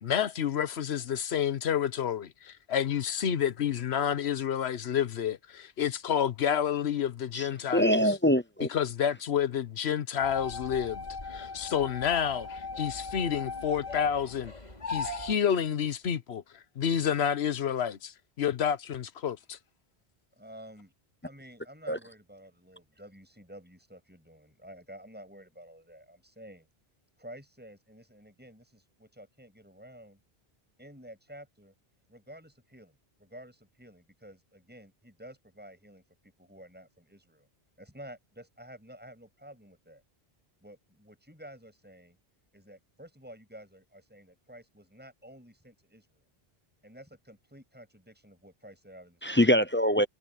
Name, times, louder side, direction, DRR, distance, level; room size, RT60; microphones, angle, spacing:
voice 1, 0.0-8.1 8.7-11.0 11.3-14.5 14.9-16.4 16.8-19.6, left 8 dB, 90° left, 1.1 m, -29 dB
voice 2, 7.7-8.7 21.9-22.0 49.2-50.1, equal, 15° left, 0.4 m, -23 dB
sound 1, 10.2-15.3, left 4 dB, 40° left, 3.2 m, -38 dB
voice 3, 20.4-20.9 21.2-26.7 27.2-30.2 30.8-31.7 32.1-37.5 37.8-40.0 40.6-42.2 42.5-46.2 46.8-49.6, equal, 10° right, 7.9 m, -51 dB
omnidirectional pair, 1.1 m